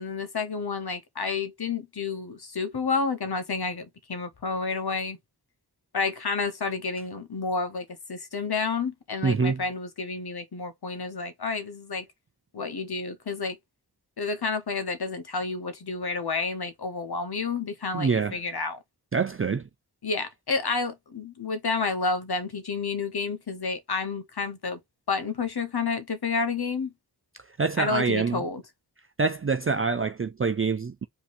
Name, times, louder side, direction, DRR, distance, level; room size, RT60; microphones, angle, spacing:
voice 1, 0.0-5.2 5.9-12.0 12.5-13.6 14.2-18.8 20.0-24.8 25.1-26.9 27.8-28.6, left 4 dB, 70° left, 1.1 m, -30 dB
voice 2, 9.2-9.6 17.9-18.4 19.1-19.7 27.6-28.4 29.2-31.0, right 4 dB, 35° right, 0.4 m, -25 dB
5.0 x 2.9 x 3.4 m
wide cardioid pair, 70°, 40 cm